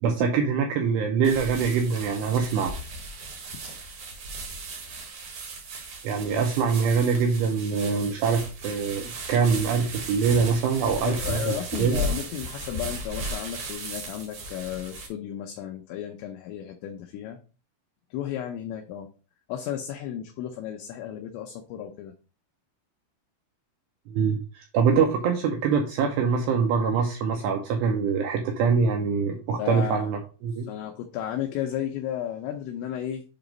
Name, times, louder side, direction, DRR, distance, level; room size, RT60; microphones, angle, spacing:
voice 1, 0.0-2.7 6.0-12.0 24.1-30.7, right 5 dB, 80° right, 3 dB, 2.5 m, -24 dB
sound 1, 1.2-15.1, right 1 dB, 65° right, 1.9 m, -36 dB
voice 2, 11.1-17.4 18.1-19.1 19.5-22.1 29.6-30.1 30.7-33.2, left 10 dB, 80° left, 4 dB, 2.7 m, -33 dB
7.4 x 2.9 x 5.1 m, 0.36 s
omnidirectional pair, 5.7 m